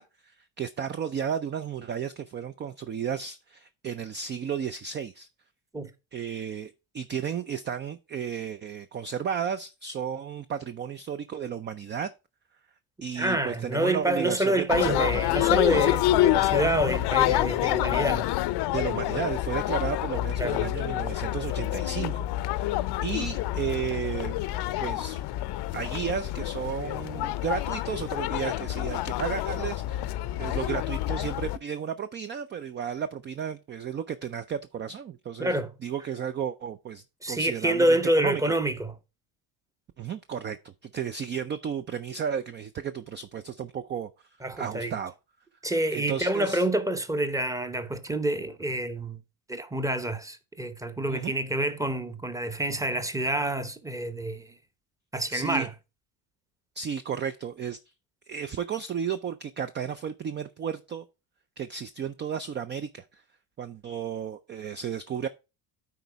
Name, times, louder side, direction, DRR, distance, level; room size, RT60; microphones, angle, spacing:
voice 1, 0.0-5.3 6.1-12.1 13.0-15.2 16.6-16.9 18.7-24.4 24.8-25.2 25.7-35.5 35.8-37.9 38.2-38.4 40.0-44.1 44.6-45.1 45.9-46.7 51.1-51.3 55.3-55.7 56.8-57.8 58.3-61.0 61.6-63.2 63.6-65.3, right 7 dB, 25° right, 0.3 m, -33 dB
voice 2, 13.2-18.3 20.4-20.7 35.4-35.7 37.2-39.0 44.4-45.0 45.6-49.2 49.5-54.5 55.1-55.7, right 1 dB, 5° right, 0.8 m, -27 dB
sound 1, 14.7-31.6, left 14 dB, 55° left, 0.6 m, -27 dB
9.4 x 4.1 x 4.5 m
supercardioid pair, 100°, 49 cm